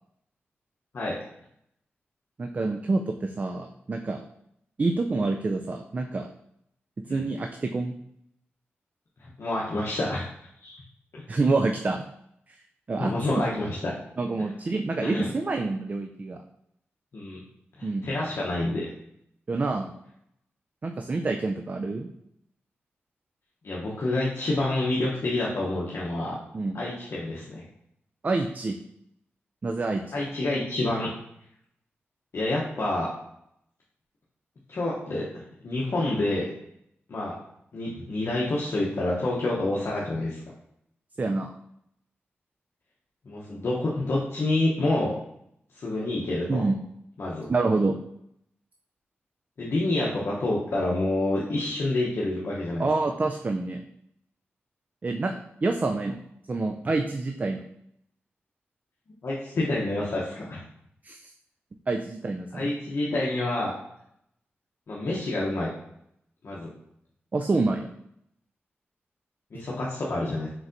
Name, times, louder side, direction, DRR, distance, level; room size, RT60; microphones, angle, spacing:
voice 1, 2.4-4.2 4.8-6.3 7.1-7.9 11.3-12.0 12.5-12.6 12.9-13.4 14.2-16.4 17.8-18.1 19.5-19.9 20.8-22.1 26.5-26.8 28.2-28.8 29.6-30.2 41.2-41.5 46.5-46.8 47.5-48.0 52.8-53.8 55.0-56.2 56.5-57.6 61.0-61.3 61.9-62.7 67.3-67.9, right 3 dB, 40° right, 5 dB, 0.3 m, -27 dB
voice 2, 9.2-10.3 10.6-10.8 11.1-11.2 13.0-13.9 15.0-15.3 17.1-17.4 17.8-18.8 23.6-26.4 26.7-27.6 30.1-31.1 32.3-33.1 34.7-35.3 35.6-36.5 37.1-37.3 37.7-40.4 43.3-45.1 45.7-46.6 47.2-47.5 49.6-52.9 59.2-60.6 62.5-63.7 64.9-65.7 66.4-66.7 69.5-70.5, left 2 dB, 65° left, -5 dB, 0.7 m, -28 dB
4.5 x 4.0 x 2.5 m, 0.76 s
cardioid pair, 60°, 4 cm